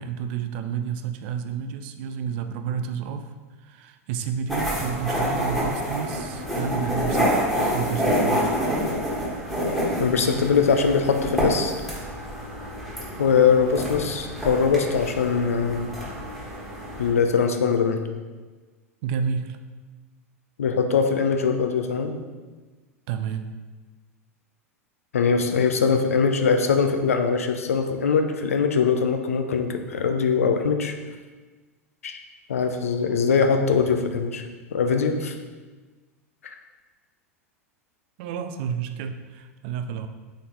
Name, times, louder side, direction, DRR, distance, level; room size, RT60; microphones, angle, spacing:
voice 1, 0.0-3.3 3.6-9.0 19.0-19.6 23.1-23.4 38.2-40.1, right 7 dB, 45° right, 8 dB, 0.3 m, -30 dB
sound 1, 4.5-17.1, equal, ahead, 1.3 m, -27 dB
voice 2, 10.0-11.7 13.2-15.9 17.0-18.0 20.6-22.2 25.1-30.9 32.0-32.2 32.5-34.4 34.7-35.4, left 5 dB, 70° left, 6 dB, 0.4 m, -22 dB
4.0 x 3.9 x 3.2 m, 1.3 s
figure-of-eight pair, 85°, 8 cm